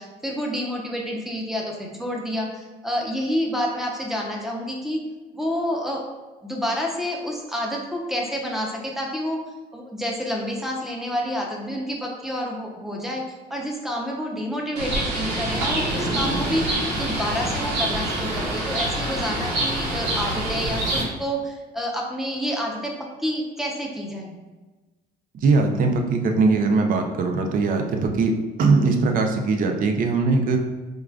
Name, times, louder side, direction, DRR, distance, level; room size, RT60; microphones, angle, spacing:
voice 1, 0.0-5.0 5.3-6.0 6.4-9.4 9.7-13.2 13.5-22.9 23.2-24.4, equal, ahead, -1 dB, 0.6 m, -28 dB
Bird, 14.8-21.0, right 1 dB, 85° right, 1.2 m, -26 dB
voice 2, 25.3-28.3 28.6-30.6, right 3 dB, 55° right, 4 dB, 0.5 m, -20 dB
4.7 x 2.4 x 2.3 m, 1.2 s
cardioid pair, 110°, 17 cm